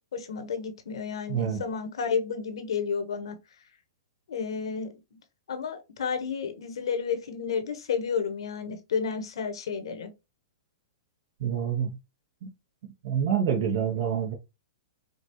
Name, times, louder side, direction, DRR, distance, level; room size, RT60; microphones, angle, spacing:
voice 1, 0.1-3.4 4.3-4.9 5.5-10.1, left 6 dB, 75° left, 1.1 m, -31 dB
voice 2, 1.3-1.6 11.4-12.0 13.0-14.3, right 8 dB, 55° right, 1.0 m, -27 dB
5.1 x 2.4 x 3.0 m
hypercardioid pair, 145°, 3 cm